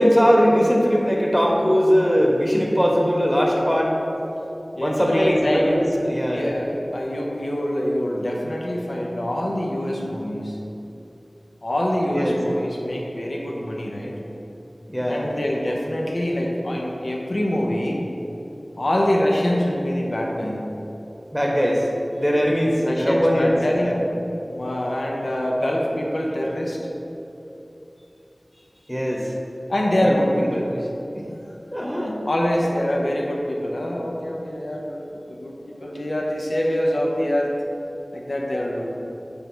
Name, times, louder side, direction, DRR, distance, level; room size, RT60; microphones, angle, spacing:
voice 1, 0.0-4.0 4.8-6.5 12.1-12.4 14.9-15.3 21.3-21.9 22.2-23.5 23.8-24.0 28.9-29.3 30.0-30.2 30.5-30.8 31.1-31.3 31.7-32.2, equal, 5° left, -1 dB, 1.2 m, -20 dB
voice 2, 4.7-5.7 6.3-10.6 11.6-14.1 15.1-18.0 18.8-20.7 22.8-24.0 24.5-26.8 29.7-30.7 32.2-37.5 38.1-38.9, left 1 dB, 85° left, -2 dB, 0.9 m, -25 dB
6.7 x 3.6 x 6.1 m, 2.9 s
wide cardioid pair, 40°, 0 cm